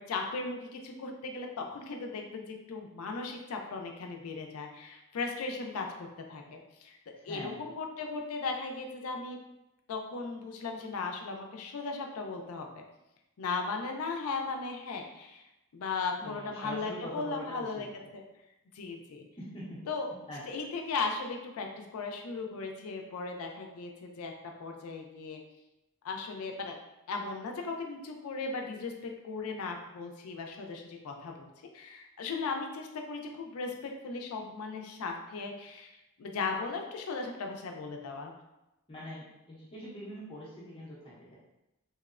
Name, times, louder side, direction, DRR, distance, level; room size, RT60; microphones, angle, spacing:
voice 1, 0.1-7.0 7.2-9.4 9.9-12.8 13.4-15.5 15.7-17.9 18.1-18.2 18.7-19.3 19.9-20.1 20.5-25.4 26.0-26.7 27.1-31.5 31.7-38.3, left 4 dB, 90° left, 3 dB, 0.4 m, -37 dB
voice 2, 7.1-7.7 16.2-18.1 19.4-19.8 20.3-20.4 38.9-41.3, equal, 25° left, -8 dB, 0.7 m, -43 dB
2.9 x 2.0 x 2.4 m, 0.93 s
head